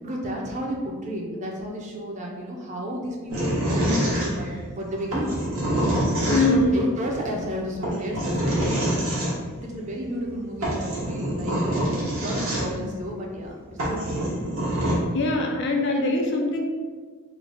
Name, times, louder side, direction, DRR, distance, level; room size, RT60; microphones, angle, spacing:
voice 1, 0.0-5.4 6.2-9.1 9.6-11.6 11.8-14.3, equal, 30° right, -1 dB, 0.5 m, -32 dB
sound 1, 3.3-4.7 5.1-6.8 7.8-9.3 10.3-10.4 10.6-12.9 13.4-13.5 13.8-14.9, right 1 dB, 70° right, 1.0 m, -25 dB
voice 2, 6.3-6.7 15.1-16.6, left 2 dB, 50° left, 2 dB, 0.4 m, -22 dB
3.2 x 2.1 x 3.8 m, 1.5 s
head